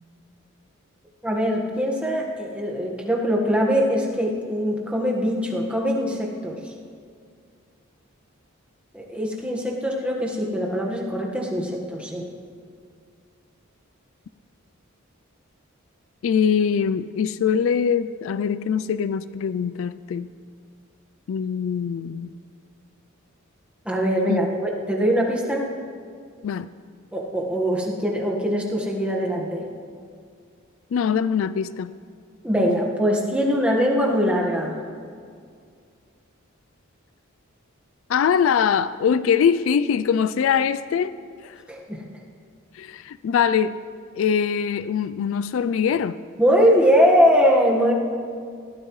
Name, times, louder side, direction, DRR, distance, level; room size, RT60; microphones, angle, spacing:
voice 1, 1.2-6.7 8.9-12.3 23.8-25.7 27.1-29.7 32.4-34.8 41.7-42.0 46.4-47.9, equal, 5° right, -2 dB, 1.4 m, -22 dB
voice 2, 16.2-20.3 21.3-22.3 24.3-24.4 26.4-26.7 30.9-31.9 38.1-41.2 41.4-41.6 42.7-43.8 44.1-46.2, left 7 dB, 65° left, 15 dB, 0.3 m, -22 dB
19.5 x 14.0 x 3.2 m, 2.2 s
head